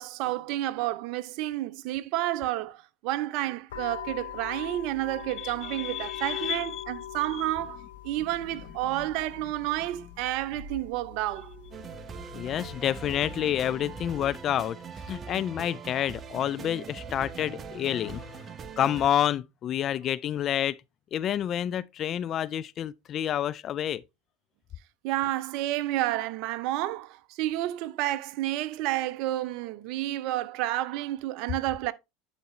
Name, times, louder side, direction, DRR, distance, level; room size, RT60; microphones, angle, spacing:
voice 1, 0.0-11.8 25.0-31.9, right 15 dB, 60° right, 0.6 m, -30 dB
sound 1, 3.7-14.3, left 10 dB, 85° left, 3.7 m, -43 dB
voice 2, 5.4-6.6 12.3-14.8 15.1-18.3 18.8-20.8 21.1-24.0, left 10 dB, 45° left, 0.3 m, -29 dB
sound 2, 11.7-19.1, right 6 dB, 30° right, 0.8 m, -42 dB
10.5 x 4.1 x 3.1 m
hypercardioid pair, 90°, 0 cm